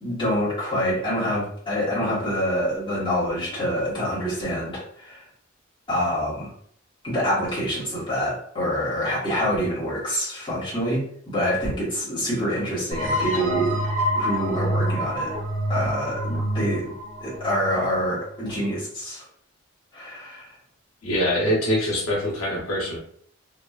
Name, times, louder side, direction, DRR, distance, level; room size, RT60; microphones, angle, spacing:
voice 1, 0.0-5.2 5.9-6.5 7.0-13.8 14.1-15.3 15.7-16.9 17.2-19.2 19.9-20.5, equal, 25° left, -9 dB, 1.2 m, -26 dB
sound 1, 12.9-18.4, equal, 60° right, 1.4 m, -27 dB
voice 2, 21.0-23.0, equal, 80° left, -4 dB, 0.9 m, -24 dB
2.9 x 2.3 x 2.3 m, 0.62 s
head